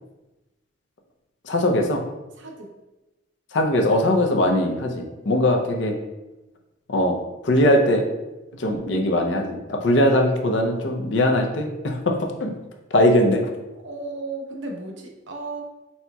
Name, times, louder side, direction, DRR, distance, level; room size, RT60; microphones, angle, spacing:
voice 1, 1.4-2.0 3.5-6.0 6.9-7.2 7.4-8.1 8.6-12.5 12.9-13.5, left 1 dB, 65° left, 3 dB, 0.6 m, -20 dB
voice 2, 2.4-2.7 13.8-15.6, right 3 dB, 65° right, 1 dB, 0.7 m, -34 dB
4.2 x 4.2 x 2.3 m, 1.0 s
head